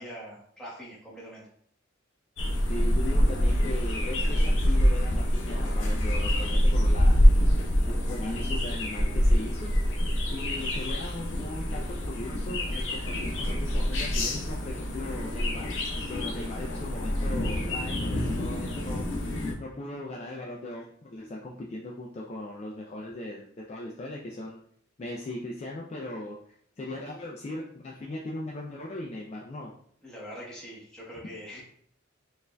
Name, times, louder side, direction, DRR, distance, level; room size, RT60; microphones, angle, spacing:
voice 1, 0.0-1.4 30.0-31.6, equal, 5° left, -6 dB, 1.0 m, -43 dB
sound 1, 2.4-19.5, equal, 60° left, 0.7 m, -26 dB
voice 2, 2.7-7.1 7.8-9.9 10.3-15.7 16.1-19.1 19.6-24.6 25.0-26.4 26.8-29.7, left 2 dB, 30° left, -3 dB, 0.3 m, -38 dB
4.1 x 2.5 x 2.2 m, 0.64 s
head